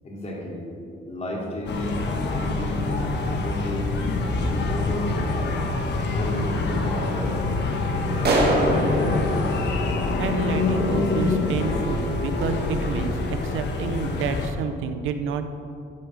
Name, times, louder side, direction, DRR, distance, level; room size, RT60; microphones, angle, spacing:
voice 1, 0.0-0.6 1.1-3.9 4.4-5.6 6.1-7.6 7.8-9.2, left 1 dB, 35° left, -3 dB, 2.9 m, -32 dB
sound 1, 1.7-14.5, left 3 dB, 60° left, 1.3 m, -25 dB
sound 2, 8.2-10.8, right 2 dB, 55° right, 2.1 m, -25 dB
voice 2, 9.3-15.5, right 6 dB, 85° right, 8 dB, 0.8 m, -30 dB
14.0 x 4.9 x 6.4 m, 2.6 s
cardioid pair, 90°, 20 cm